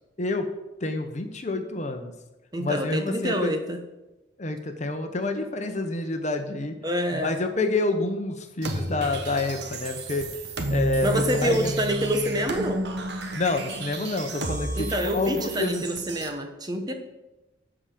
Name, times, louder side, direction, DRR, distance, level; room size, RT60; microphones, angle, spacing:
voice 1, 0.2-0.5 0.8-2.1 2.6-3.6 4.4-6.8 7.1-10.3 10.7-11.7 13.3-15.8, left 2 dB, 35° left, 6 dB, 1.0 m, -28 dB
voice 2, 2.5-3.8 6.8-7.3 11.0-12.9 14.8-16.9, equal, 20° right, 5 dB, 1.0 m, -27 dB
sound 1, 8.6-16.3, right 2 dB, 60° right, 1.4 m, -32 dB
13.5 x 5.0 x 6.8 m, 1.0 s
head